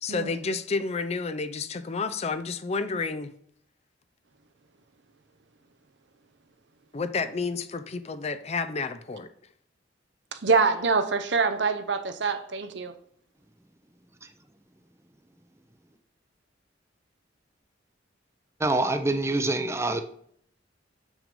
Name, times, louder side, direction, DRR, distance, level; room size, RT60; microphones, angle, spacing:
voice 1, 0.0-3.3 6.9-9.3, left 4 dB, 35° left, 0.5 m, -30 dB
voice 2, 10.3-12.9, right 4 dB, 65° right, 0.7 m, -25 dB
voice 3, 18.6-20.0, right 2 dB, 15° right, 0.6 m, -25 dB
6.7 x 6.0 x 5.3 m
head